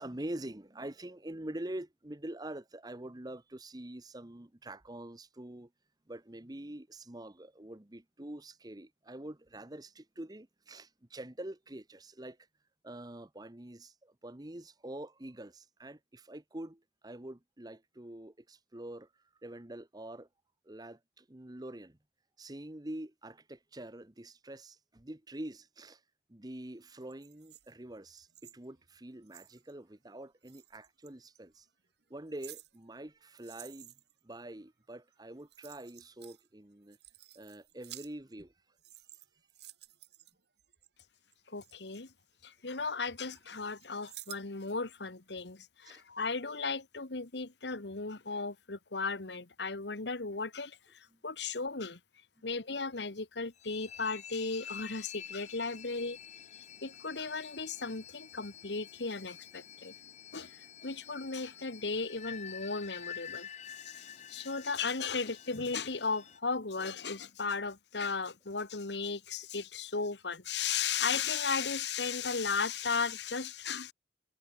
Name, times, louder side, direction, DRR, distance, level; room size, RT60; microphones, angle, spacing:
voice 1, 0.0-5.7 6.1-12.4 12.8-19.1 19.4-20.3 20.7-22.0 22.4-26.0 26.3-31.7 32.1-33.9 34.2-37.0 37.3-38.5 45.8-46.0 52.4-52.5, right 1 dB, 20° right, 1.0 m, -45 dB
sound 1, 26.9-29.7 30.4-31.4 32.0-34.2 35.1-35.2 35.4-36.5 36.8-38.5 38.8-40.9 41.3-42.8 43.1-44.8 45.2-45.3, right 14 dB, 70° right, 2.6 m, -53 dB
voice 2, 41.5-42.1 42.4-52.0 52.4-56.2 56.8-59.9 60.3-60.6 60.8-63.5 63.8-73.9, left 4 dB, 75° left, 1.6 m, -36 dB
sound 2, 53.6-66.4, left 9 dB, 40° left, 1.1 m, -49 dB
head